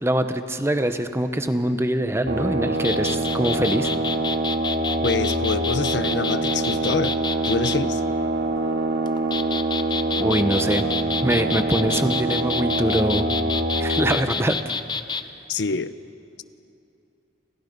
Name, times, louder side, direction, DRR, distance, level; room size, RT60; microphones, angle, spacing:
voice 1, 0.0-3.9 10.2-10.9 11.2-13.2 13.8-14.6, right 1 dB, 15° right, 8 dB, 1.0 m, -23 dB
sound 1, 2.3-14.2, right 2 dB, 85° right, 2.1 m, -25 dB
sound 2, 2.7-7.8 9.1-15.2, left 5 dB, 25° left, 0.8 m, -29 dB
voice 2, 5.0-7.2 7.4-8.0 15.5-15.9, left 4 dB, 70° left, 13 dB, 0.8 m, -25 dB
30.0 x 27.0 x 5.4 m, 2.7 s
head